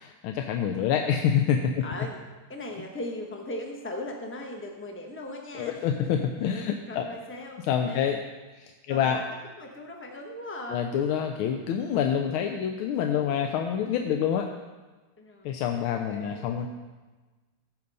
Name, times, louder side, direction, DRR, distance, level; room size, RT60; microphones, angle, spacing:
voice 1, 0.0-1.8 5.5-7.1 7.6-8.2 8.5-9.2 10.7-14.5 15.4-16.7, left 8 dB, 85° left, 5 dB, 1.5 m, -27 dB
voice 2, 1.8-2.2 2.5-6.1 6.9-8.1 8.9-9.2 9.6-10.8 13.2-13.3 15.2-15.5 15.9-16.5, left 1 dB, 15° left, 1 dB, 0.4 m, -38 dB
14.0 x 5.2 x 5.4 m, 1.3 s
omnidirectional pair, 2.3 m